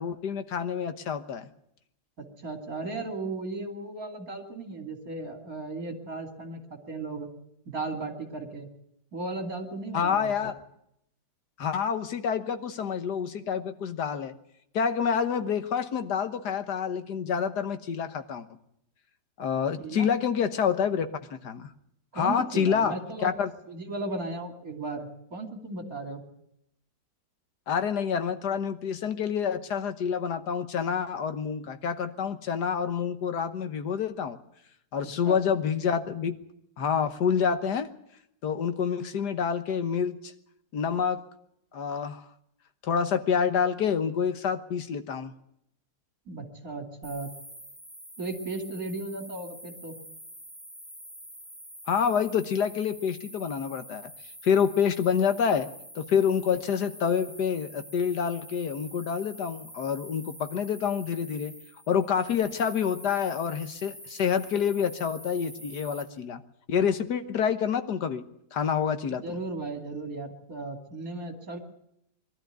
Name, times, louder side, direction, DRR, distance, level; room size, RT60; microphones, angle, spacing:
voice 1, 0.0-1.5 9.9-10.5 11.6-14.4 14.7-18.5 19.4-21.7 22.1-23.0 23.2-23.5 27.7-34.4 34.9-36.4 36.8-37.9 38.4-40.3 40.7-41.2 41.7-42.3 42.8-45.3 51.9-54.1 54.4-55.7 56.0-61.5 61.9-66.4 66.7-68.2 68.5-69.2, left 7 dB, 75° left, 9 dB, 1.8 m, -27 dB
voice 2, 2.2-7.3 7.7-8.7 9.1-10.5 19.8-20.1 22.1-23.3 23.7-26.2 35.2-35.4 46.3-47.3 48.2-49.9 69.2-71.6, right 3 dB, 55° right, 4 dB, 3.3 m, -36 dB
sound 1, 47.0-66.0, equal, ahead, 3.5 m, -46 dB
22.5 x 13.0 x 9.3 m, 0.77 s
omnidirectional pair, 1.8 m